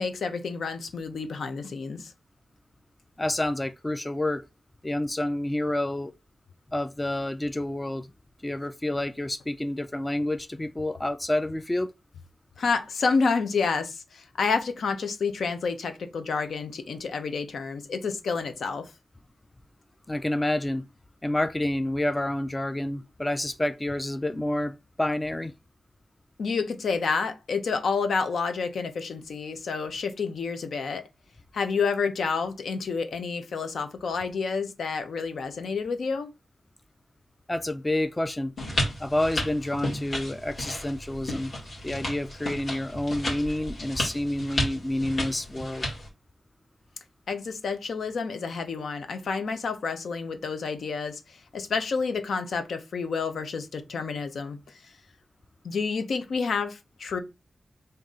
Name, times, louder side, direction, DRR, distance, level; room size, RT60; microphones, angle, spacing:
voice 1, 0.0-2.1 12.6-18.9 26.4-31.0 31.5-36.3 47.3-54.9 55.6-57.2, left 5 dB, 85° left, 0.7 m, -29 dB
voice 2, 3.2-4.4 4.8-6.1 6.7-8.1 8.4-11.9 20.1-20.9 21.2-25.5 37.5-38.5 39.0-41.5 41.8-45.9, left 1 dB, 15° left, 0.3 m, -29 dB
sound 1, 38.6-46.1, left 1 dB, 50° left, 2.0 m, -33 dB
3.7 x 2.7 x 4.0 m
wide cardioid pair, 150°, 0 cm